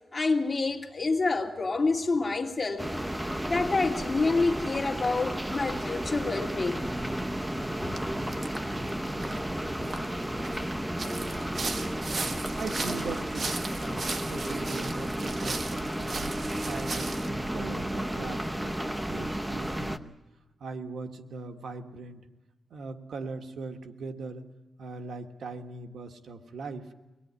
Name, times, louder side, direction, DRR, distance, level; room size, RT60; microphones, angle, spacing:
voice 1, 0.1-3.0 3.5-6.8 7.5-8.0, left 3 dB, 30° left, 2 dB, 2.4 m, -28 dB
sound 1, 2.8-20.0, right 1 dB, 10° right, 0.8 m, -33 dB
sound 2, 8.0-8.1 8.3-8.6 8.9-10.6 11.0-17.3, right 3 dB, 55° right, 1.6 m, -37 dB
voice 2, 12.6-16.2 16.6-20.1 20.6-22.3 22.7-24.5 24.8-26.9, right 4 dB, 90° right, 6 dB, 1.6 m, -40 dB
24.0 x 19.5 x 9.7 m, 1.1 s
wide cardioid pair, 110°, 0 cm